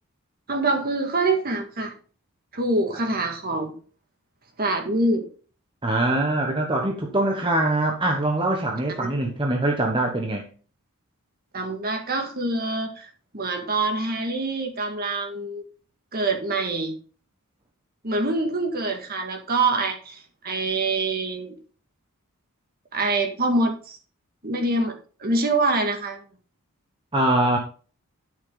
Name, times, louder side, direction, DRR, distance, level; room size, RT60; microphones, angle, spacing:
voice 1, 0.5-1.9 2.5-3.7 4.6-5.2 11.5-15.6 16.1-16.9 18.0-21.6 22.9-24.0 24.4-26.2, right 2 dB, 40° right, 1.9 m, -25 dB
voice 2, 5.8-10.4 27.1-27.6, right 1 dB, 20° right, 1.2 m, -23 dB
12.0 x 6.5 x 3.9 m
head